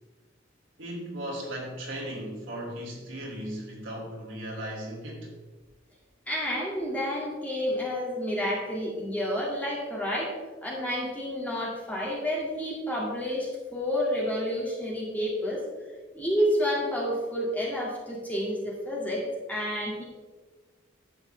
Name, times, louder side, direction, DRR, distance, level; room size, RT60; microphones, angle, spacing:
voice 1, 0.8-5.3, right 1 dB, 70° right, -2 dB, 3.0 m, -37 dB
voice 2, 6.3-10.3 10.6-15.6 16.1-19.2 19.5-20.0, equal, 10° left, -4 dB, 2.2 m, -29 dB
11.5 x 8.0 x 3.4 m, 1.3 s
head